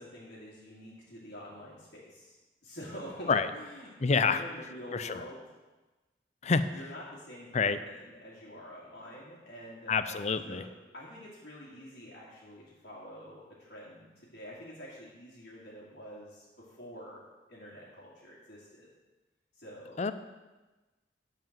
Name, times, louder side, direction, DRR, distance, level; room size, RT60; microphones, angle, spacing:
voice 1, 0.0-2.3 2.6-5.4 6.7-10.7 10.9-17.2 17.5-18.9 19.5-20.1, equal, 65° left, -9 dB, 2.4 m, -47 dB
voice 2, 4.0-4.4 4.9-5.2 6.4-6.6 7.5-7.8 9.9-10.6 20.0-20.1, left 5 dB, 40° left, 12 dB, 0.5 m, -27 dB
10.5 x 5.0 x 7.4 m, 1.2 s
head